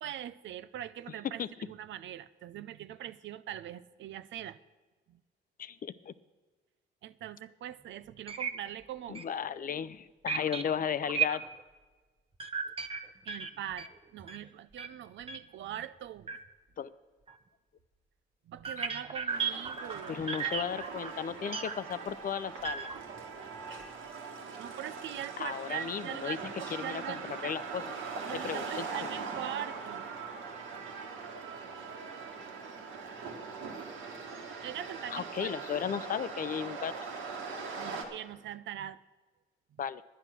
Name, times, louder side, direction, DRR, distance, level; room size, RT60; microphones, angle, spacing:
voice 1, 0.0-4.6 5.1-5.2 7.0-9.2 13.2-16.4 18.5-20.2 24.6-27.6 28.2-30.1 34.6-35.5 37.8-39.0, right 11 dB, 70° right, 15 dB, 0.5 m, -42 dB
voice 2, 5.6-6.1 9.1-11.4 16.8-16.9 20.1-22.9 25.4-26.4 26.8-27.2 27.4-27.8 28.3-29.1 35.1-36.9 39.8-40.0, left 8 dB, 45° left, 16 dB, 0.5 m, -35 dB
sound 1, 7.7-7.8 8.3-8.5 8.8-8.9 9.1-9.2 10.3-11.6 12.4-14.4 14.8-15.0 15.2-15.4 15.7-15.9 16.3-16.4 17.3-17.4 18.6-21.7 22.6-23.2 23.5-23.9, right 6 dB, 30° right, 0.9 m, -35 dB
sound 2, 19.3-38.0, right 4 dB, 85° right, 1.8 m, -41 dB
10.0 x 10.0 x 6.1 m, 1.3 s
cardioid pair, 90°, 20 cm